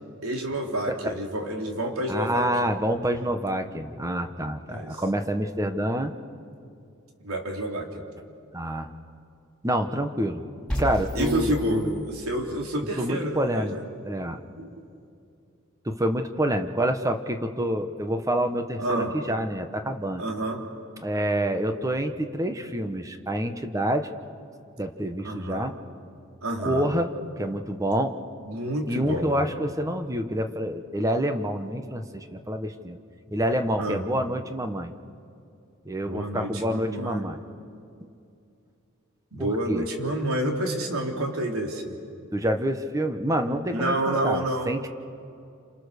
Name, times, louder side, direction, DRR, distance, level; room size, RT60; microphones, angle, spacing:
voice 1, 0.2-2.5 4.7-5.0 7.2-8.0 11.2-13.8 14.6-14.8 18.8-19.1 20.2-20.6 25.2-25.7 26.4-26.9 28.5-29.4 33.8-34.0 36.0-37.3 39.3-42.0 43.7-44.7, right 1 dB, 75° right, 1 dB, 3.5 m, -29 dB
voice 2, 2.1-6.1 8.5-8.9 9.6-10.4 10.8-12.0 13.0-13.7 14.0-14.4 15.8-20.2 21.0-24.1 24.8-25.7 26.6-28.2 28.9-33.0 33.3-34.9 35.8-37.4 39.4-39.8 42.3-44.9, right 1 dB, 15° right, 7 dB, 1.1 m, -27 dB
sound 1, 10.7-12.7, equal, 5° left, 4.9 m, -33 dB
29.0 x 27.5 x 6.7 m, 2.5 s
head